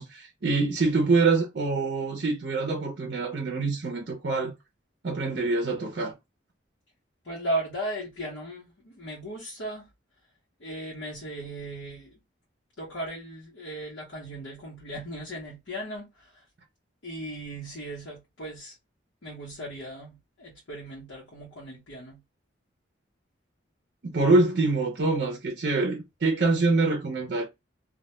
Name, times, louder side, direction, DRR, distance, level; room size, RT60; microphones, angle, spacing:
voice 1, 0.0-4.5 5.0-6.1 24.0-27.4, right 3 dB, 55° right, 0.5 m, -25 dB
voice 2, 7.2-9.9 10.6-12.2 12.8-16.4 17.0-18.7 19.2-22.2, right 1 dB, 80° left, 0.9 m, -37 dB
2.2 x 2.1 x 2.9 m
head